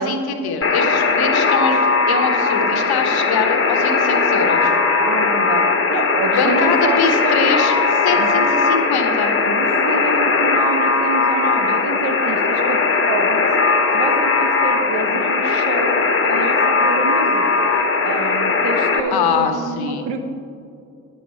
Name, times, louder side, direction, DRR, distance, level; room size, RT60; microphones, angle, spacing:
voice 1, 0.0-4.7 6.3-9.4 19.1-20.0, left 5 dB, 60° left, 6 dB, 1.4 m, -23 dB
Alarm, 0.6-19.0, left 4 dB, 30° left, 1.4 m, -18 dB
voice 2, 5.0-5.6 5.9-7.5 8.1-8.8 9.4-13.5 13.9-16.0 16.3-17.7 18.0-20.2, right 4 dB, 70° right, 6 dB, 1.2 m, -27 dB
10.5 x 8.8 x 4.6 m, 2.5 s
hypercardioid pair, 45°, 43 cm